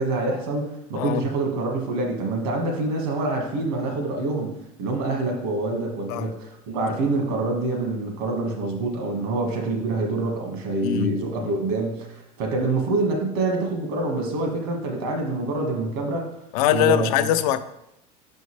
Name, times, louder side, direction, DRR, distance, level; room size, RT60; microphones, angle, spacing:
voice 1, 0.0-4.5 4.8-16.3 16.7-17.3, right 2 dB, 80° right, 1.7 m, -26 dB
voice 2, 10.8-11.5 16.5-17.6, left 11 dB, 80° left, 0.5 m, -22 dB
5.7 x 5.4 x 3.2 m
supercardioid pair, 135°, 19 cm